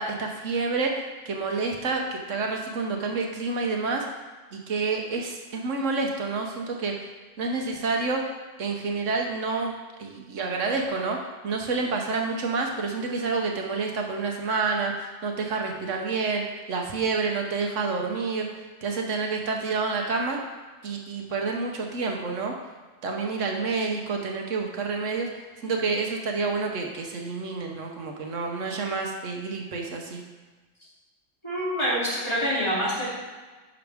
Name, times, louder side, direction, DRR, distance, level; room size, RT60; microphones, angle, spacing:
voice 1, 0.0-4.1 4.5-7.1 7.4-8.2 8.6-9.7 10.0-11.2 11.4-16.4 16.7-18.5 18.8-20.4 20.8-22.5 23.0-30.2, right 4 dB, 75° right, 1 dB, 1.2 m, -28 dB
voice 2, 31.4-33.1, equal, 20° left, -9 dB, 2.9 m, -26 dB
10.5 x 6.0 x 3.5 m, 1.3 s
omnidirectional pair, 1.3 m